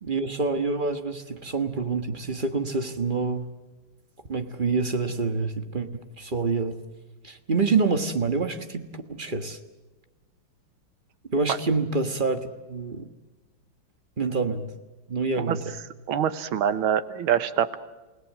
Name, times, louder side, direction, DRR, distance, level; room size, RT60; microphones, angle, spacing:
voice 1, 0.0-3.5 4.3-6.8 7.2-9.6 11.3-13.1 14.2-14.7 15.1-15.7, right 4 dB, 30° right, 8 dB, 1.3 m, -27 dB
voice 2, 16.1-17.8, right 9 dB, 90° right, 13 dB, 1.9 m, -25 dB
29.5 x 17.5 x 7.4 m, 1.2 s
omnidirectional pair, 2.2 m